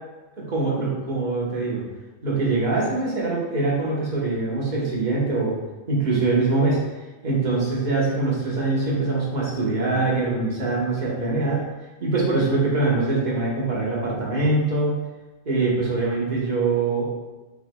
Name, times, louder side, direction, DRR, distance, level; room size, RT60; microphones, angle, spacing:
voice 1, 0.4-1.8 2.2-5.6 5.9-6.8 7.2-11.7 12.0-15.0 15.4-17.1, right 3 dB, 35° right, -5 dB, 1.2 m, -23 dB
6.8 x 3.3 x 2.3 m, 1.1 s
omnidirectional pair, 1.5 m